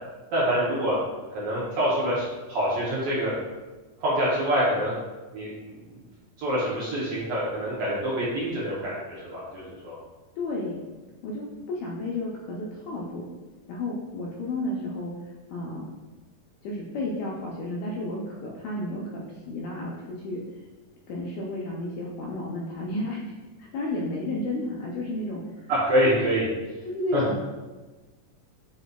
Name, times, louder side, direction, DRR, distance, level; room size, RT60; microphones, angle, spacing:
voice 1, 0.3-1.0 1.3-3.3 4.0-4.9 5.3-6.0 6.4-10.0 25.7-26.5 27.1-27.2, equal, 80° right, -8 dB, 1.2 m, -26 dB
voice 2, 10.4-10.7 11.2-13.2 13.7-15.1 15.5-15.9 16.6-20.4 21.1-23.2 23.6-25.7 26.8-27.4, left 1 dB, 80° left, -4 dB, 1.6 m, -32 dB
6.6 x 2.6 x 2.3 m, 1.2 s
omnidirectional pair, 3.7 m